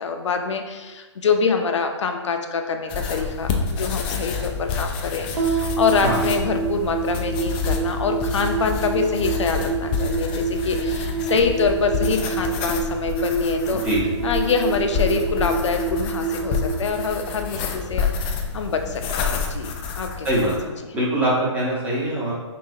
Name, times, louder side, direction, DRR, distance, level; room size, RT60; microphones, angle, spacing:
voice 1, 0.0-13.8 14.2-19.7 20.0-20.3 20.8-20.9, left 5 dB, 70° left, 5 dB, 0.6 m, -25 dB
sound 1, 2.9-20.6, left 6 dB, 20° left, 0.3 m, -28 dB
sound 2, 5.4-17.9, right 6 dB, 85° right, 0.9 m, -28 dB
voice 2, 20.2-22.3, right 1 dB, 10° right, -6 dB, 1.0 m, -23 dB
5.6 x 2.7 x 2.7 m, 1.3 s
hypercardioid pair, 145°, 16 cm